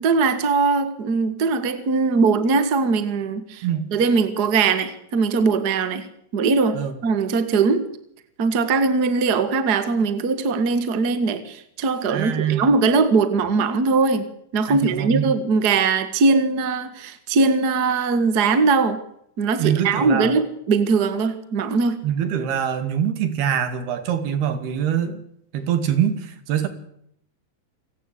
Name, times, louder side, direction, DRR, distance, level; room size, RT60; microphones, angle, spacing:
voice 1, 0.0-3.7 3.9-6.1 6.3-7.8 8.4-14.2 14.5-19.0 19.4-22.0, right 4 dB, 55° right, 11 dB, 1.1 m, -20 dB
voice 2, 12.1-12.7 14.7-15.3 19.6-20.3 22.0-25.2 25.5-26.7, right 9 dB, 80° right, 10 dB, 4.3 m, -24 dB
27.5 x 17.0 x 8.3 m, 0.73 s
omnidirectional pair, 4.5 m